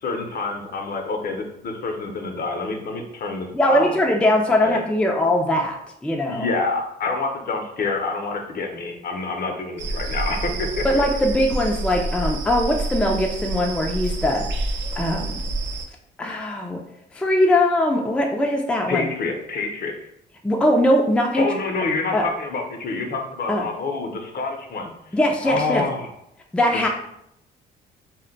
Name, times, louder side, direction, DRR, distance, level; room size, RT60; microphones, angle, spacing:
voice 1, 0.0-4.0 4.6-4.8 6.3-10.8 18.9-20.0 21.4-24.9 25.4-26.1 26.7-26.9, left 3 dB, 50° left, 3 dB, 0.6 m, -27 dB
voice 2, 3.5-5.8 6.0-6.5 10.8-14.5 15.0-15.4 16.2-16.8 17.1-19.1 20.4-21.5 22.1-22.3 23.5-23.7 25.1-25.9 26.5-26.9, left 1 dB, 5° left, 1 dB, 0.3 m, -21 dB
sound 1, 9.8-15.9, right 2 dB, 65° right, 0.4 m, -28 dB
2.1 x 2.1 x 3.8 m, 0.77 s
cardioid pair, 90°, 20 cm